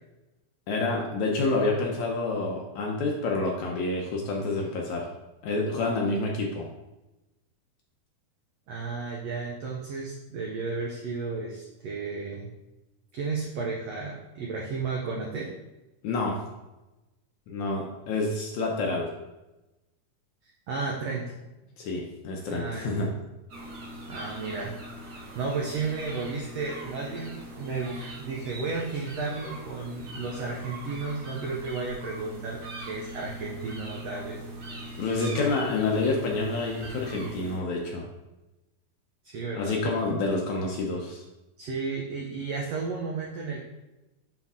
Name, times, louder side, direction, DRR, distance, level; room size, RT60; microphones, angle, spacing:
voice 1, 0.7-5.1 5.4-6.7 16.0-16.4 17.5-19.1 21.8-23.1 35.0-38.0 39.5-41.2, left 3 dB, 70° left, -1 dB, 1.9 m, -28 dB
voice 2, 8.7-12.5 13.1-15.6 20.4-21.3 22.5-23.0 24.1-24.7 25.3-34.4 39.2-39.8 41.6-43.6, right 4 dB, 80° right, -1 dB, 1.4 m, -33 dB
sound 1, 23.5-37.6, right 1 dB, 50° right, 1.3 m, -41 dB
9.7 x 4.5 x 3.6 m, 1.0 s
omnidirectional pair, 4.1 m